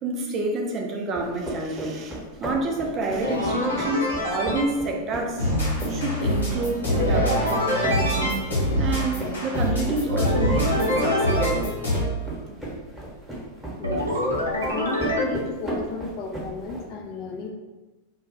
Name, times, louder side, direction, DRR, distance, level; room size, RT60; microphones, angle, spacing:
voice 1, 0.0-5.5 5.9-8.5 8.8-11.7, right 2 dB, 30° right, 1 dB, 0.5 m, -29 dB
sound 1, 1.1-16.8, right 1 dB, 5° right, 1.1 m, -35 dB
sound 2, 3.2-4.7 6.9-8.3 10.1-11.5 13.8-15.3, left 1 dB, 80° right, 0.7 m, -25 dB
sound 3, 5.4-12.2, equal, 75° left, 1.1 m, -26 dB
voice 2, 13.8-14.1 14.7-17.5, left 3 dB, 40° left, 2 dB, 0.4 m, -33 dB
2.3 x 2.3 x 3.7 m, 1.1 s
figure-of-eight pair, 90°, 0 cm